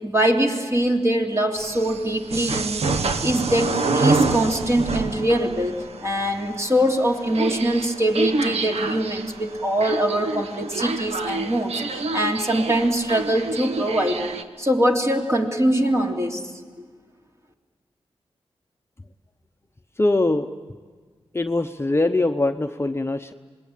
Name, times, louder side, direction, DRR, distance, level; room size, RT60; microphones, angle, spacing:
voice 1, 0.0-14.2 14.6-16.4, right 1 dB, 30° right, 1 dB, 3.1 m, -23 dB
sound 1, 1.6-14.4, right 3 dB, 85° right, 1.1 m, -27 dB
voice 2, 20.0-20.5 21.3-23.3, left 2 dB, 25° left, 7 dB, 0.9 m, -22 dB
26.0 x 20.5 x 9.0 m, 1.5 s
cardioid pair, 65°, 10 cm